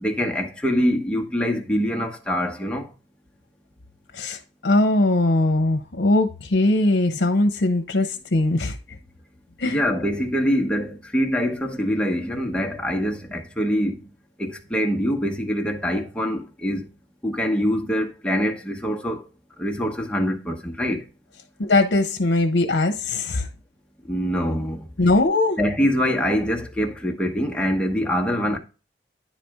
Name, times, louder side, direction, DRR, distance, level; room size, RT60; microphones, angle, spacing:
voice 1, 0.0-2.9 9.6-14.0 14.4-16.8 17.2-19.2 19.6-21.0 24.1-24.8 25.6-28.6, equal, 5° left, 1.0 m, -24 dB
voice 2, 4.1-8.8 9.6-9.8 21.6-23.5 25.0-25.6, left 2 dB, 75° left, 0.8 m, -20 dB
10.0 x 4.2 x 3.5 m
head